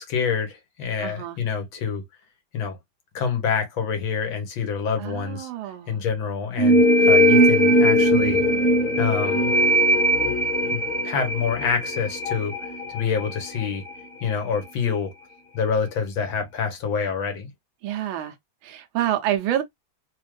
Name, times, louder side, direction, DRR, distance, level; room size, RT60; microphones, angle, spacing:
voice 1, 0.0-2.0 2.5-2.8 3.1-8.4 9.0-9.5 10.7-12.6 12.9-13.8 14.2-15.1 15.5-17.5, left 6 dB, 75° left, 1.9 m, -27 dB
voice 2, 1.0-1.4 5.0-6.0 17.8-18.3 18.6-19.6, right 12 dB, 80° right, 1.4 m, -27 dB
sound 1, 6.6-14.0, equal, 45° left, 1.6 m, -20 dB
4.2 x 2.4 x 3.2 m
omnidirectional pair, 2.2 m